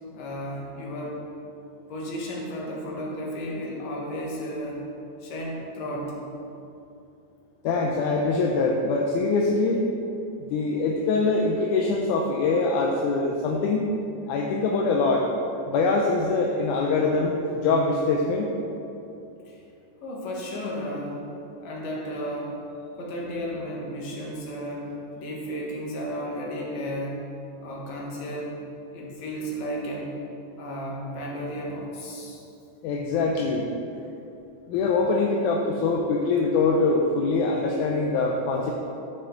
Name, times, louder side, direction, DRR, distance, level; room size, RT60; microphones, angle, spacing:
voice 1, 0.1-1.2 1.9-4.8 5.2-6.2 19.5-19.6 20.0-21.2 21.6-22.6 23.0-27.2 27.6-28.6 28.9-30.2 30.6-32.4 34.7-34.8, equal, 65° left, -3 dB, 2.5 m, -33 dB
voice 2, 7.6-9.8 10.5-13.9 14.3-15.3 15.7-18.5 32.8-33.7 34.7-38.7, left 3 dB, 80° left, 0 dB, 2.1 m, -23 dB
13.5 x 5.7 x 3.8 m, 2.8 s
omnidirectional pair, 3.6 m